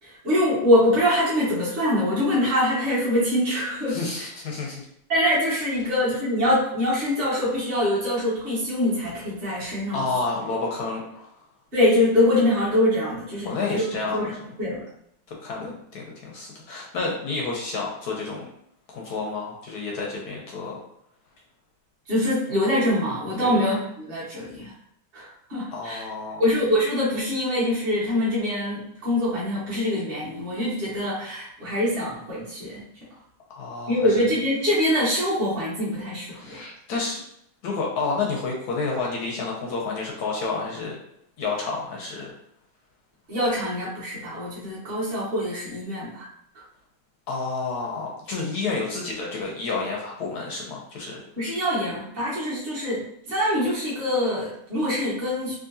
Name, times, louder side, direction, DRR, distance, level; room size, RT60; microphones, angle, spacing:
voice 1, 0.0-4.2 5.1-10.1 11.7-13.8 14.1-14.8 15.6-15.7 22.1-24.7 25.1-26.0 26.4-32.8 33.9-36.6 43.3-46.2 51.4-55.5, left 1 dB, 35° right, -9 dB, 1.2 m, -24 dB
voice 2, 3.9-4.8 9.9-11.3 13.5-14.4 15.3-18.4 18.9-20.8 23.4-23.6 25.7-26.5 33.5-34.2 36.3-37.2 37.6-41.0 41.4-42.3 47.3-51.2, left 3 dB, 70° left, -1 dB, 1.0 m, -30 dB
3.7 x 2.6 x 2.6 m, 0.73 s
omnidirectional pair, 2.2 m